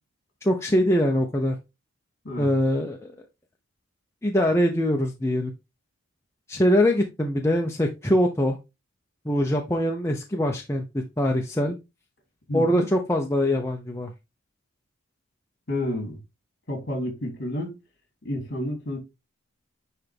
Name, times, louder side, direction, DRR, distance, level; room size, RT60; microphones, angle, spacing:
voice 1, 0.4-1.6 2.4-3.1 4.2-5.5 6.5-8.6 9.2-11.8 12.5-14.1, equal, 15° left, 0.6 m, -23 dB
voice 2, 12.5-12.8 15.7-16.2 16.7-17.8 18.2-19.0, left 1 dB, 50° left, 3.0 m, -30 dB
9.8 x 3.4 x 3.5 m
head